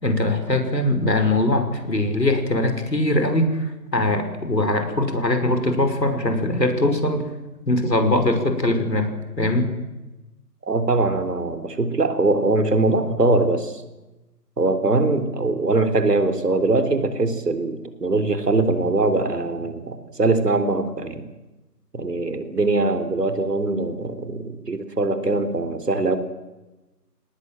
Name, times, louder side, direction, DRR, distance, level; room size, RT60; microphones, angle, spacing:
voice 1, 0.0-3.7 3.9-7.3 7.7-9.1 9.4-9.7, left 1 dB, 90° left, 7 dB, 5.7 m, -21 dB
voice 2, 10.6-13.8 14.6-21.2 21.9-26.2, right 2 dB, 70° right, 10 dB, 4.0 m, -22 dB
29.0 x 19.0 x 7.8 m, 1.1 s
figure-of-eight pair, 150°, 49 cm